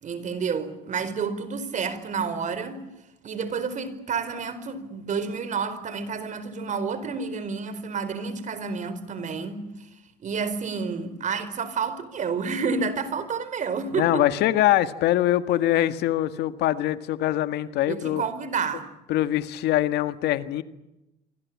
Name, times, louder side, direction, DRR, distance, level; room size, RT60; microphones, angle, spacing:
voice 1, 0.0-2.8 3.2-9.9 10.2-14.3 17.9-18.9, right 5 dB, 45° right, 4.5 m, -30 dB
voice 2, 14.0-18.2 19.1-20.6, left 13 dB, 85° left, 1.8 m, -23 dB
27.0 x 25.0 x 8.6 m
cardioid pair, 110°, 17 cm